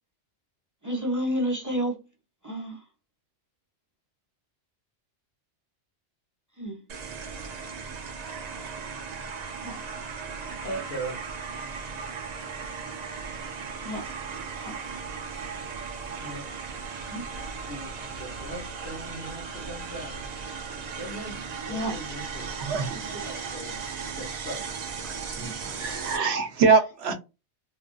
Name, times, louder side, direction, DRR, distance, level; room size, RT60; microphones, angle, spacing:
voice 1, 0.8-2.0 2.4-2.8 6.6-6.8 9.6-9.8 13.8-14.0 14.6-14.7 17.1-17.3 21.7-21.9, equal, 20° right, 0.8 m, -30 dB
sound 1, 6.9-26.2, right 5 dB, 50° right, 0.5 m, -37 dB
voice 2, 10.6-11.2 16.2-16.4 17.3-20.2 21.0-21.4 21.7-22.5 23.1-23.8 24.1-24.6, right 1 dB, 55° left, 1.0 m, -39 dB
voice 3, 22.6-23.1 25.0-27.1, right 5 dB, 70° right, 0.9 m, -24 dB
3.0 x 2.4 x 2.3 m
omnidirectional pair, 1.2 m